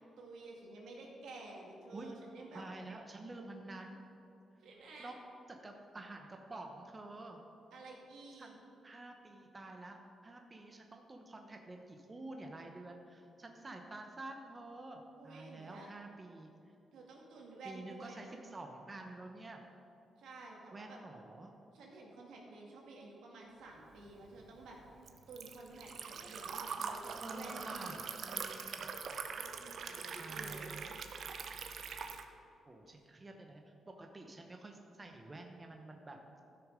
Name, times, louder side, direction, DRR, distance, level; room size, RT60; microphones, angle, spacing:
voice 1, 0.2-2.6 4.6-5.1 7.7-8.5 15.2-15.9 16.9-18.3 20.2-21.0 21.7-24.8 25.3-27.9 29.3-30.7, right 2 dB, 85° right, -1 dB, 2.1 m, -51 dB
voice 2, 1.9-2.2 2.5-4.0 5.0-5.2 5.5-7.4 8.4-16.5 17.6-19.6 20.7-21.5 27.2-28.9 30.2-30.9 32.7-36.4, right 2 dB, 25° right, 3 dB, 1.0 m, -49 dB
Liquid, 24.0-32.2, right 6 dB, 65° right, 0.8 m, -43 dB
13.5 x 6.4 x 5.1 m, 2.7 s
cardioid pair, 85°, 0 cm